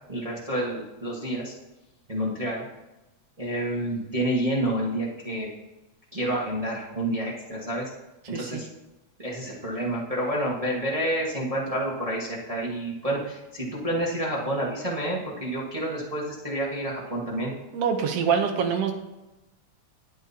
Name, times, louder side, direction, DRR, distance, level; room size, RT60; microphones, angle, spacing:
voice 1, 0.1-1.5 2.1-2.6 3.4-5.5 6.1-7.9 8.3-8.7 9.2-17.5, right 1 dB, 45° right, -4 dB, 0.4 m, -29 dB
voice 2, 17.7-18.9, right 6 dB, 70° right, 5 dB, 1.6 m, -25 dB
19.5 x 7.7 x 2.8 m, 1.0 s
omnidirectional pair, 3.5 m